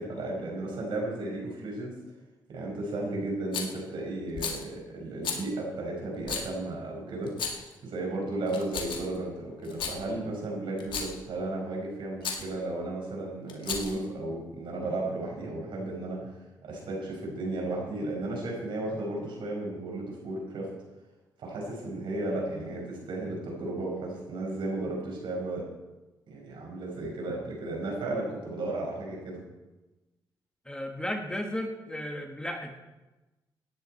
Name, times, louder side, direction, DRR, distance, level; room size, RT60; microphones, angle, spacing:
voice 1, 0.0-1.9 2.5-16.3 16.6-20.7 21.4-25.7 26.3-29.4, right 2 dB, 75° right, -1 dB, 5.5 m, -34 dB
Rattle, 3.5-3.8 4.3-4.6 5.2-5.4 6.2-6.5 7.3-7.7 8.5-9.2 9.6-10.0 10.8-11.2 12.2-12.5 13.5-14.0, left 5 dB, 75° left, 2.2 m, -34 dB
voice 2, 30.7-32.8, left 1 dB, 10° left, 4 dB, 1.9 m, -34 dB
16.5 x 11.0 x 4.5 m, 1.1 s
cardioid pair, 75°, 8 cm